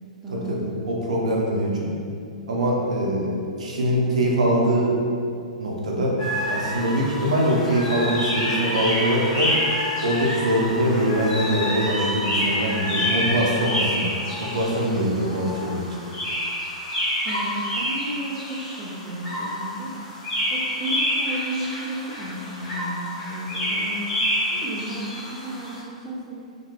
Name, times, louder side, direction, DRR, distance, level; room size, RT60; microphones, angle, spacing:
voice 1, 0.8-1.9 2.5-3.3 3.6-4.9 5.6-6.1 6.5-9.5 10.0-14.1 14.4-15.8, equal, 65° right, -3 dB, 0.6 m, -23 dB
sound 1, 6.2-25.8, equal, 25° left, 0.7 m, -28 dB
voice 2, 17.2-20.0 20.5-24.1 24.5-26.4, right 1 dB, 15° right, -8 dB, 0.4 m, -33 dB
2.2 x 2.2 x 3.2 m, 2.4 s
figure-of-eight pair, 110°, 4 cm